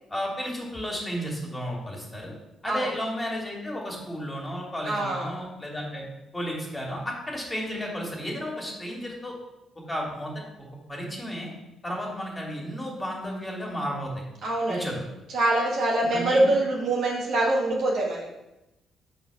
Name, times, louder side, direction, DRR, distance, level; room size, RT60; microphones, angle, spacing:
voice 1, 0.1-2.3 2.6-6.0 6.3-9.3 9.9-10.4 10.9-11.5 11.8-14.1 14.7-15.0 16.0-16.5, equal, 20° left, -2 dB, 2.2 m, -33 dB
voice 2, 4.8-5.4 14.4-14.9 15.3-18.3, right 2 dB, 55° right, -4 dB, 1.8 m, -24 dB
5.7 x 4.0 x 5.8 m, 0.93 s
figure-of-eight pair, 40°, 0 cm